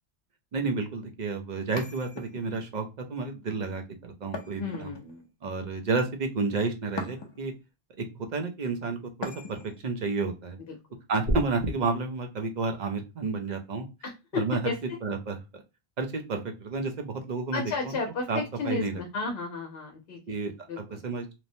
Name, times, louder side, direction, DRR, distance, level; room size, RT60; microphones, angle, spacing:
voice 1, 0.5-5.0 5.4-7.5 8.0-10.6 11.1-13.9 14.3-14.6 15.0-15.6 16.0-18.0 18.3-19.0 20.3-21.3, right 4 dB, 50° right, 5 dB, 0.6 m, -31 dB
sound 1, 1.8-2.7 4.3-5.3 7.0-7.6 9.2-9.8, left 3 dB, 50° left, 0.3 m, -40 dB
voice 2, 4.6-5.2 10.7-10.8 14.0-14.7 17.5-18.3 18.6-20.4 20.7-21.0, left 4 dB, 70° left, 3 dB, 0.8 m, -33 dB
sound 2, 11.2-11.7, right 1 dB, 75° right, 0.9 m, -28 dB
3.0 x 2.0 x 2.6 m, 0.26 s
omnidirectional pair, 1.1 m